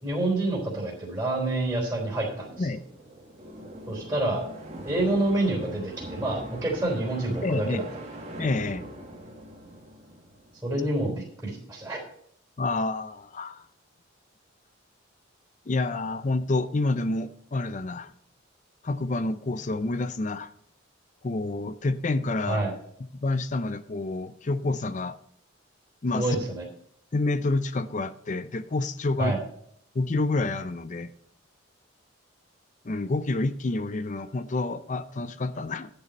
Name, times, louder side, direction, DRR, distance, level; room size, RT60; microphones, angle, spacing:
voice 1, 0.0-2.7 3.9-4.5 4.9-7.8 10.6-12.0 22.5-22.7 26.1-26.6 29.2-29.4, right 2 dB, 10° right, -2 dB, 3.7 m, -27 dB
sound 1, 2.1-10.9, right 1 dB, 30° right, 1.8 m, -42 dB
voice 2, 7.4-7.9 8.4-8.8 12.6-13.6 15.7-18.1 18.8-20.5 21.2-22.6 23.2-25.1 26.0-26.4 27.1-29.4 29.9-31.1 32.8-35.9, left 2 dB, 40° left, 13 dB, 0.5 m, -28 dB
10.5 x 6.9 x 5.3 m, 0.65 s
head